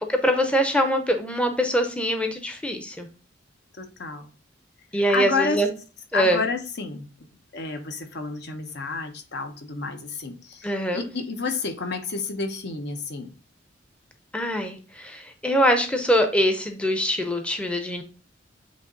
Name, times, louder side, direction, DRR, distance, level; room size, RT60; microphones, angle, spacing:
voice 1, 0.1-3.1 4.9-5.7 6.1-6.4 10.6-11.1 14.3-18.0, equal, 5° left, 5 dB, 0.6 m, -23 dB
voice 2, 3.8-4.3 5.1-5.6 6.1-7.1 7.5-13.4, left 4 dB, 60° left, 6 dB, 0.9 m, -30 dB
8.2 x 3.0 x 3.8 m, 0.36 s
head